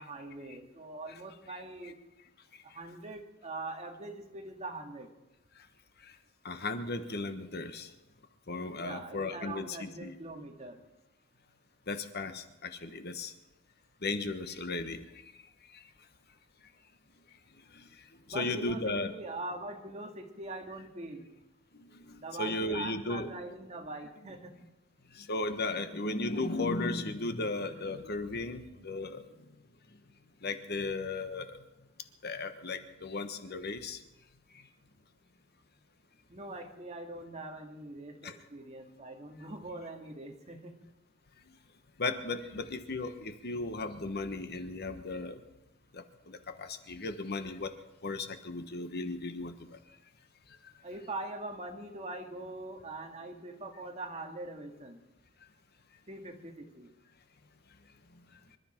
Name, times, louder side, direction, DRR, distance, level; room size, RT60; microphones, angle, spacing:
voice 1, 0.0-2.0 2.6-5.1 8.8-10.8 18.3-21.3 22.2-24.6 36.3-40.8 50.8-55.0 56.1-56.9, right 2 dB, 30° right, 3 dB, 2.1 m, -42 dB
voice 2, 1.5-1.9 6.0-6.2 6.4-7.9 8.5-10.1 11.9-13.3 14.0-15.0 17.7-17.9 18.3-19.1 21.8-23.3 25.1-29.2 30.4-31.6 32.2-34.0 38.2-38.4 42.0-45.4 45.9-47.7 48.0-49.8 50.6-50.7, left 2 dB, 50° left, 9 dB, 1.2 m, -36 dB
26.5 x 12.5 x 4.5 m, 0.99 s
head